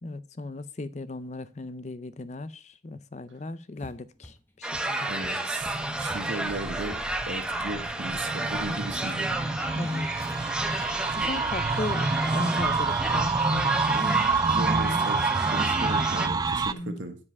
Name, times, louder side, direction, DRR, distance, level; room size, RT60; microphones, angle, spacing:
voice 1, 0.0-5.1 9.7-10.1 11.1-14.0 16.7-17.0, left 2 dB, 40° left, 0.5 m, -36 dB
sound 1, 3.8-10.4 10.8-10.9 11.3-11.4 11.9-12.0 12.4-13.0 13.4-13.6, equal, 10° left, 1.1 m, -49 dB
sound 2, 4.6-16.3, right 2 dB, 5° right, 0.7 m, -31 dB
voice 2, 5.1-7.0 7.3-9.3 13.9-17.2, right 2 dB, 80° right, 1.4 m, -36 dB
sound 3, 5.6-16.7, right 4 dB, 20° right, 0.3 m, -28 dB
9.7 x 4.8 x 5.4 m
head